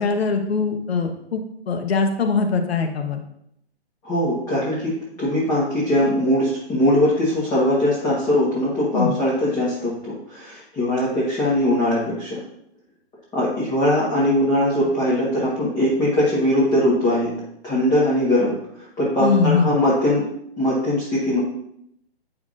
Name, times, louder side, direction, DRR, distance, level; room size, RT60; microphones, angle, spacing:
voice 1, 0.0-3.2 8.9-9.1 19.2-19.8, left 4 dB, 70° left, 5 dB, 1.0 m, -22 dB
voice 2, 4.0-12.4 13.3-17.3 17.6-18.5 19.0-20.2 20.6-21.4, left 1 dB, 10° left, -7 dB, 1.3 m, -21 dB
8.8 x 5.8 x 2.5 m, 0.74 s
hypercardioid pair, 145°, 32 cm